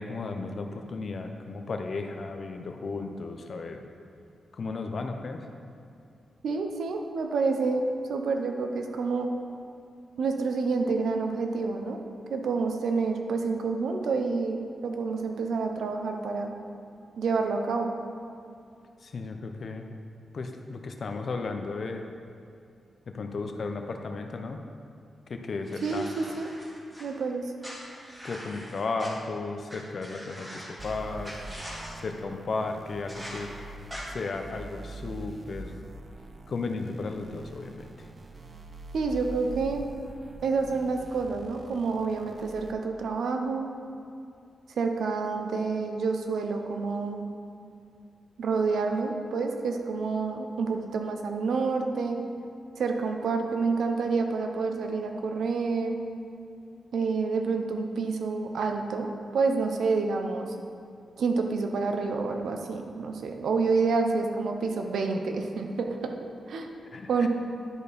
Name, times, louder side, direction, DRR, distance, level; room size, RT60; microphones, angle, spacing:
voice 1, 0.0-3.8 4.5-5.5 19.0-19.9 20.3-22.0 23.1-24.6 25.3-26.1 28.2-33.5 34.1-35.8 36.5-38.1 66.9-67.3, left 3 dB, 50° left, 5 dB, 0.6 m, -34 dB
voice 2, 6.4-9.3 10.2-12.0 12.3-16.5 17.2-17.9 25.8-26.5 27.0-27.5 38.9-39.8 40.4-43.7 44.8-47.2 48.4-52.2 52.8-56.0 56.9-59.1 59.3-60.5 61.2-66.1 66.5-66.7 67.1-67.3, right 4 dB, 80° right, 4 dB, 0.7 m, -28 dB
sound 1, 25.7-27.0 27.6-29.1 29.7-29.8 30.0-30.9 31.2-31.9 33.1-33.4 33.9-34.0, equal, 15° right, 1.8 m, -42 dB
sound 2, 30.8-42.7, right 2 dB, 35° right, 0.5 m, -45 dB
11.0 x 4.5 x 5.1 m, 2.4 s
wide cardioid pair, 125°, 0 cm